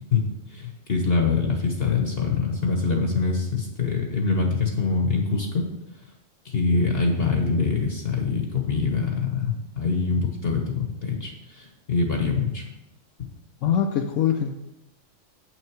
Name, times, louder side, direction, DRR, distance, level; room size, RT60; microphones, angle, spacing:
voice 1, 0.1-5.7 6.4-12.7 13.2-13.3, left 4 dB, 50° left, 2 dB, 1.1 m, -24 dB
voice 2, 13.6-14.5, left 8 dB, 70° left, 3 dB, 0.9 m, -23 dB
7.8 x 6.1 x 4.6 m, 0.91 s
omnidirectional pair, 1.4 m